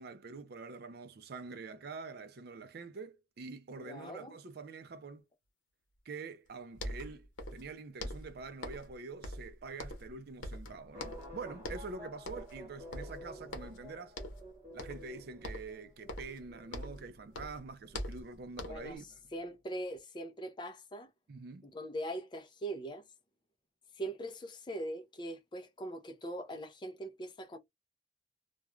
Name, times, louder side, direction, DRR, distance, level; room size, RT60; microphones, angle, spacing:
voice 1, 0.0-5.2 6.1-14.2 14.7-19.1 21.3-21.7, right 4 dB, 55° right, 0.4 m, -46 dB
voice 2, 3.8-4.3 18.7-19.0 19.3-21.1 21.6-23.0 24.0-27.6, right 1 dB, 25° left, 0.4 m, -41 dB
sound 1, 6.5-6.6 6.7-7.7 8.0-8.9 9.2-10.2 10.4-11.3 11.6-11.9 12.2-12.6 12.9-13.8 14.1-14.5 14.8-15.1 15.4-17.1 17.3-19.0, left 1 dB, 80° left, 0.8 m, -43 dB
sound 2, 10.9-19.4 19.7-19.8, equal, 15° right, 1.0 m, -52 dB
2.4 x 2.1 x 3.0 m
head